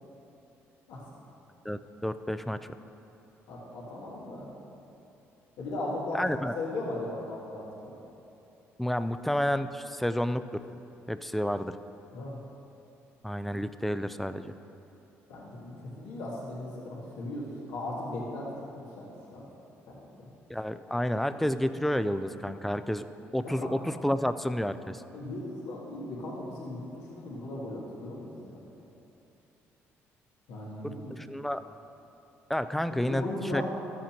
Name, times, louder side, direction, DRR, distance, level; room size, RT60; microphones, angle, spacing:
voice 1, 1.6-2.7 6.1-6.5 8.8-10.5 11.1-11.7 13.2-14.5 20.5-23.0 23.3-25.0 31.1-31.6 32.5-33.3 33.5-33.6, equal, 5° left, 11 dB, 0.4 m, -30 dB
voice 2, 3.5-4.5 5.6-6.2 6.5-8.0 12.1-12.4 15.3-19.4 19.9-20.3 23.4-23.7 25.1-28.7 30.5-31.2 32.9-33.6, left 2 dB, 90° left, -6 dB, 1.8 m, -38 dB
13.5 x 7.5 x 2.9 m, 2.9 s
cardioid pair, 85°, 5 cm